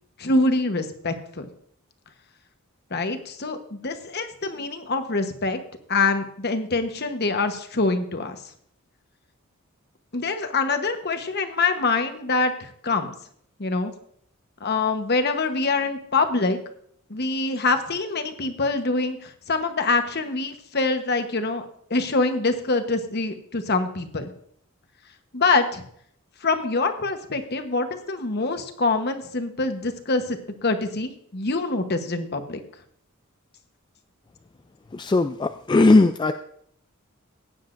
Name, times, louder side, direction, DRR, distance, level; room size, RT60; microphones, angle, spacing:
voice 1, 0.2-1.4 2.9-5.6 5.9-8.4 10.1-13.1 13.6-13.9 14.6-16.6 17.1-21.6 21.9-24.3 25.3-25.8 26.4-32.6, left 3 dB, 50° left, 7 dB, 1.1 m, -25 dB
voice 2, 34.9-36.3, left 2 dB, 20° left, 8 dB, 0.3 m, -18 dB
16.0 x 9.5 x 2.6 m, 0.66 s
head